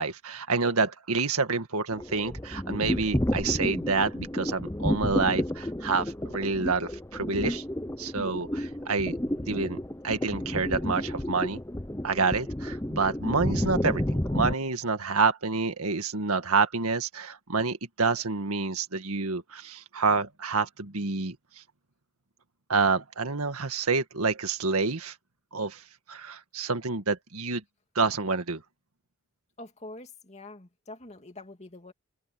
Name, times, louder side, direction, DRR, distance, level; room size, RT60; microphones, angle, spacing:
voice 1, 0.0-7.6 8.0-9.2 9.5-9.8 10.0-11.6 12.0-14.0 14.3-21.4 22.7-25.1 25.5-25.8 26.1-27.6 28.0-28.6, right 4 dB, 90° right, 1.9 m, -28 dB
sound 1, 1.9-14.5, left 1 dB, 15° left, 0.8 m, -31 dB
voice 2, 29.6-31.9, left 2 dB, 30° left, 2.6 m, -45 dB
head